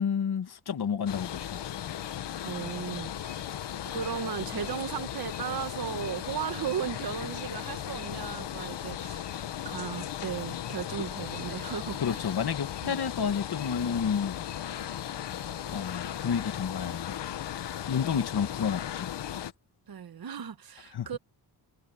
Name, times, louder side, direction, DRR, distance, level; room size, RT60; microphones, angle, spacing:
voice 1, 0.0-1.7 12.0-14.4 15.7-17.2 17.9-19.1 20.9-21.1, left 7 dB, 65° left, 2.3 m, -30 dB
sound 1, 1.1-19.5, left 10 dB, 85° left, 1.3 m, -37 dB
voice 2, 2.4-3.5 3.8-12.2 12.8-13.0 19.9-21.2, right 8 dB, 60° right, 1.6 m, -36 dB
cardioid pair, 100°, 41 cm